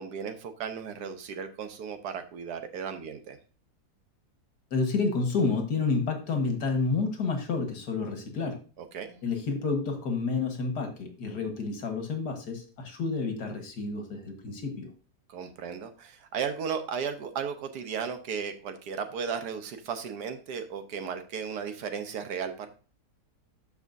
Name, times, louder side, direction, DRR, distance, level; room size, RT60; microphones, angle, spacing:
voice 1, 0.0-3.4 8.8-9.2 15.3-22.7, right 6 dB, 85° right, 8 dB, 1.5 m, -35 dB
voice 2, 4.7-8.6 9.2-14.9, left 4 dB, 80° left, 4 dB, 2.0 m, -29 dB
12.5 x 4.9 x 2.6 m, 0.37 s
omnidirectional pair, 1.7 m